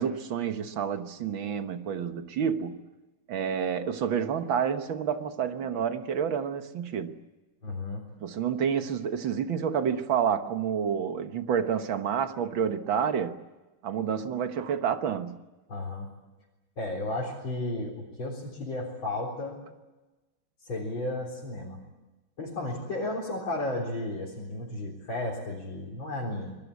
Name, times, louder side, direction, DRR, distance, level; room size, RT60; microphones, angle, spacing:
voice 1, 0.0-2.8 3.3-7.2 8.2-13.4 13.8-15.4, right 7 dB, 70° right, 2.0 m, -29 dB
voice 2, 7.6-8.0 15.7-16.1 16.8-19.6 20.6-21.8 22.4-26.5, left 2 dB, 65° left, 4.8 m, -33 dB
26.5 x 21.0 x 8.4 m
omnidirectional pair, 2.3 m